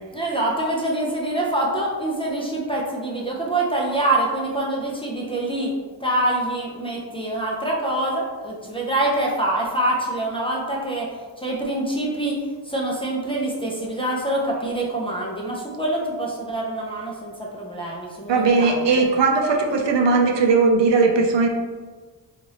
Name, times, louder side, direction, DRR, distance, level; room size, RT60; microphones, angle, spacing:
voice 1, 0.1-5.7 6.0-11.1 11.4-12.4 12.6-19.0, right 1 dB, 15° left, -5 dB, 0.4 m, -25 dB
voice 2, 18.3-21.5, right 4 dB, 70° right, 2 dB, 0.6 m, -18 dB
3.2 x 2.5 x 4.0 m, 1.4 s
wide cardioid pair, 165°, 46 cm